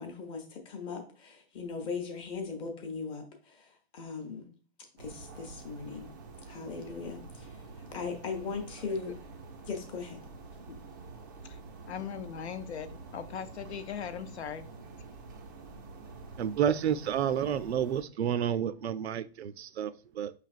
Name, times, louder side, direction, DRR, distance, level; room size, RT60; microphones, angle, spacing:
voice 1, 0.0-4.5 5.0-6.1 6.5-7.6 7.9-9.1 9.7-10.2, left 5 dB, 15° left, 0.7 m, -39 dB
sound 1, 5.0-18.0, right 3 dB, 20° right, 0.4 m, -48 dB
voice 2, 11.9-14.7, left 8 dB, 80° left, 0.7 m, -39 dB
voice 3, 16.4-20.3, right 9 dB, 75° right, 0.5 m, -30 dB
5.4 x 3.2 x 2.4 m
hypercardioid pair, 150°, 32 cm